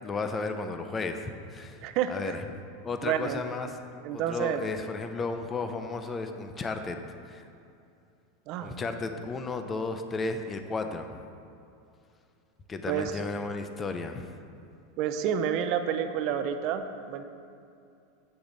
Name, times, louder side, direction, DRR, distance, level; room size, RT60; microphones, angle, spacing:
voice 1, 0.0-1.8 2.1-2.4 2.8-3.8 4.1-7.0 7.3-7.4 8.6-11.2 12.7-14.3, left 3 dB, 15° left, 7 dB, 0.5 m, -34 dB
voice 2, 1.8-2.4 3.0-3.4 4.0-4.6 8.5-8.8 12.9-13.1 15.0-17.2, right 9 dB, 45° right, 8 dB, 0.5 m, -29 dB
8.1 x 6.7 x 3.9 m, 2.6 s
supercardioid pair, 155°, 0 cm